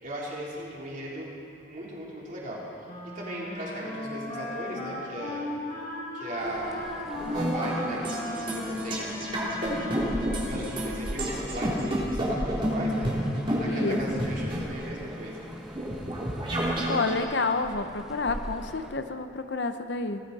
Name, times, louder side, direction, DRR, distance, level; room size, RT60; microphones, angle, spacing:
voice 1, 0.0-1.3 1.6-2.6 3.1-5.5 6.1-7.0 7.3-13.1 13.5-15.5, right 1 dB, 45° right, -5 dB, 3.7 m, -38 dB
Wind instrument woodwind instrument, 2.9-10.4, left 1 dB, 40° left, 4.1 m, -37 dB
sound 1, 6.4-18.9, equal, 5° right, 0.9 m, -41 dB
sound 2, 7.1-17.2, equal, 30° right, 3.1 m, -30 dB
voice 2, 13.7-14.2 16.9-20.2, left 3 dB, 65° left, 8 dB, 0.8 m, -29 dB
21.5 x 15.0 x 4.2 m, 2.5 s
head